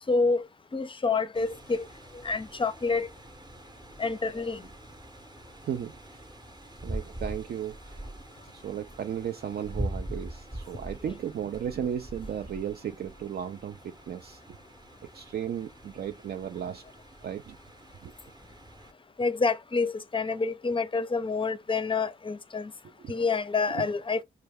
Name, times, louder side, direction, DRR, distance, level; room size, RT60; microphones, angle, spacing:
voice 1, 0.1-0.4 0.7-1.8 2.2-3.1 4.0-4.6 19.2-22.7 23.1-24.2, left 4 dB, 25° left, 0.5 m, -28 dB
sound 1, 1.3-18.9, right 1 dB, 20° right, 0.7 m, -43 dB
voice 2, 5.6-6.3 6.8-8.2 8.4-14.4 15.0-16.8 17.2-17.6 18.0-18.1 22.8-23.1 23.7-23.8, right 9 dB, 55° right, 0.4 m, -35 dB
4.4 x 2.3 x 3.4 m
supercardioid pair, 50°, 20 cm